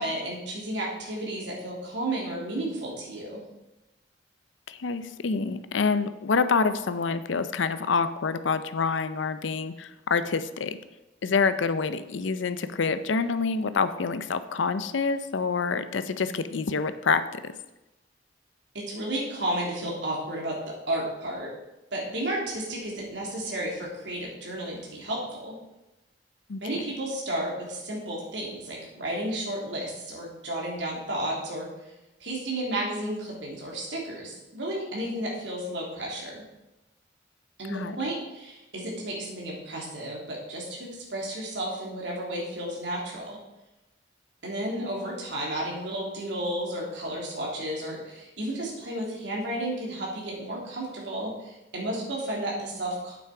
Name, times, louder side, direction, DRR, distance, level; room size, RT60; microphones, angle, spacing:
voice 1, 0.0-3.4 18.9-20.6 20.9-21.5 21.9-25.5 26.6-31.7 32.2-36.4 37.6-43.4 44.4-53.2, right 1 dB, 70° right, -3 dB, 3.1 m, -32 dB
voice 2, 4.7-10.8 11.2-17.5 26.5-26.6 37.7-37.9, left 5 dB, 85° left, 12 dB, 0.6 m, -27 dB
8.6 x 8.0 x 4.9 m, 0.99 s
head